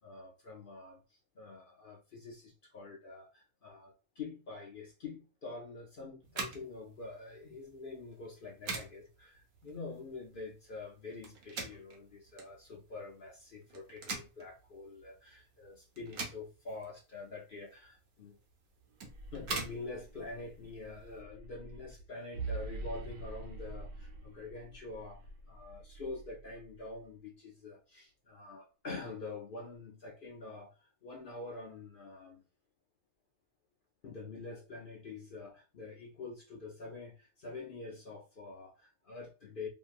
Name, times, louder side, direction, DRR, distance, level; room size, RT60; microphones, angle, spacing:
voice 1, 0.0-18.4 19.3-25.2 25.5-32.4 34.0-39.7, left 3 dB, 65° left, 0.5 m, -46 dB
sound 1, 6.2-21.2, right 3 dB, 75° right, 1.3 m, -45 dB
sound 2, 18.9-27.0, right 3 dB, 90° right, 1.3 m, -46 dB
2.9 x 2.6 x 2.4 m
omnidirectional pair, 1.6 m